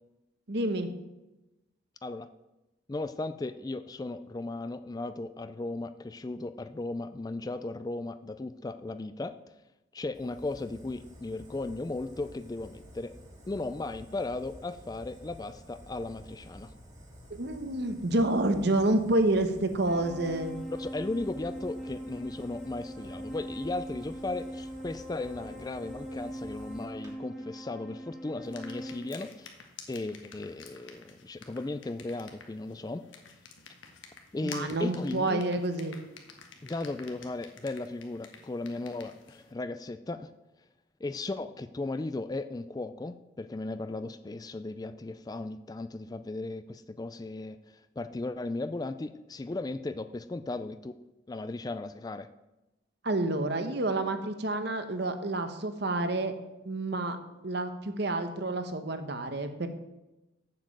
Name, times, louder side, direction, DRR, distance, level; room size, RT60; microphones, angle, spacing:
voice 1, 0.5-0.9 17.3-20.6 34.4-36.0 53.0-56.3 56.6-57.2 57.4-59.7, right 2 dB, 55° right, 8 dB, 1.0 m, -29 dB
voice 2, 2.9-9.3 9.9-13.1 13.5-16.7 20.7-29.5 29.9-33.1 34.3-35.4 36.6-40.3 41.0-51.0 51.3-52.3, left 2 dB, 20° left, 12 dB, 0.3 m, -36 dB
Fire, 10.1-27.1, equal, 20° right, 1.9 m, -51 dB
sound 1, 19.8-29.0, equal, ahead, 1.3 m, -41 dB
sound 2, 28.4-39.5, left 5 dB, 70° left, 1.4 m, -51 dB
7.5 x 7.3 x 7.6 m, 0.99 s
head